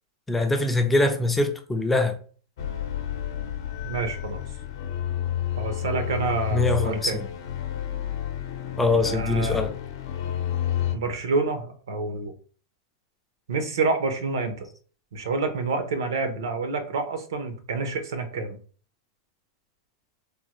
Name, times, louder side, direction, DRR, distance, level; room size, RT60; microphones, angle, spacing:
voice 1, 0.3-2.2 6.5-7.3 8.8-9.7, left 2 dB, 5° left, 0.3 m, -23 dB
sound 1, 2.6-10.9, left 10 dB, 65° left, 0.6 m, -30 dB
voice 2, 3.8-4.4 5.6-7.2 9.0-9.6 10.9-12.3 13.5-14.7 15.1-18.6, right 4 dB, 85° right, 0.8 m, -28 dB
3.5 x 2.2 x 3.0 m
supercardioid pair, 150°, 2 cm